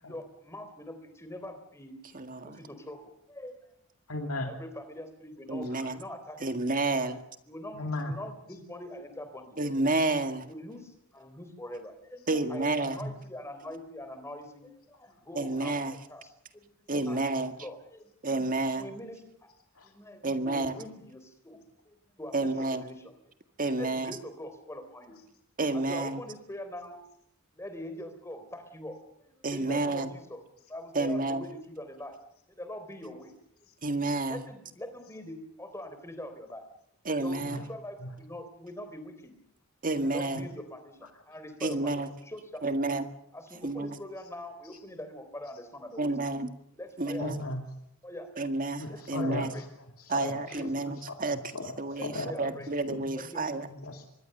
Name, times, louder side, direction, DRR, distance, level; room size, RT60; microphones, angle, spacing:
voice 1, 0.0-2.0 2.4-3.6 4.5-6.4 7.0-7.2 7.5-9.8 10.4-18.0 18.7-19.2 19.8-21.6 21.9-23.1 23.7-25.2 25.7-27.0 27.5-30.4 30.7-32.2 32.5-33.3 34.3-36.6 37.2-39.1 40.0-42.7 43.3-46.2 46.8-47.3 48.0-48.3 48.9-49.7 50.2-50.9 51.9-52.7 53.1-53.4, left 1 dB, 15° left, 8 dB, 3.6 m, -43 dB
voice 2, 2.1-2.6 5.5-6.0 6.4-7.2 9.6-10.4 12.3-13.0 15.4-15.9 16.9-17.5 18.2-18.9 20.2-20.8 22.3-22.8 23.6-24.2 25.6-26.2 29.4-30.1 31.0-31.4 33.8-34.4 37.1-37.6 39.8-40.5 41.6-42.1 42.6-43.1 43.6-44.0 46.0-46.5 47.0-47.4 48.4-49.5 50.1-51.4 51.8-53.7, right 2 dB, 40° right, 8 dB, 1.8 m, -30 dB
voice 3, 4.1-4.5 7.7-8.1 12.8-13.1 19.8-19.9 37.4-37.6 47.2-47.6 48.8-49.5 50.1-50.4 51.3-51.7 52.1-52.3 52.9-53.1 53.9-54.0, left 2 dB, 75° left, 3 dB, 2.6 m, -35 dB
24.5 x 21.0 x 6.7 m, 0.74 s
head